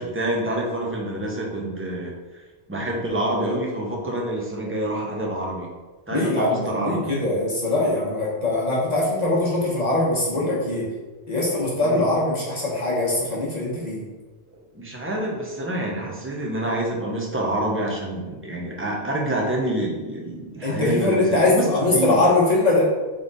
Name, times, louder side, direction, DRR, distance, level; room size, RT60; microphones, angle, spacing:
voice 1, 0.0-2.1 2.7-5.7 6.1-7.3 11.8-12.1 14.7-22.3, right 1 dB, 15° right, -2 dB, 0.6 m, -27 dB
voice 2, 6.1-10.8 11.3-14.0 20.6-22.8, left 2 dB, 40° left, -6 dB, 1.1 m, -22 dB
3.5 x 3.5 x 3.9 m, 1.3 s
omnidirectional pair, 1.1 m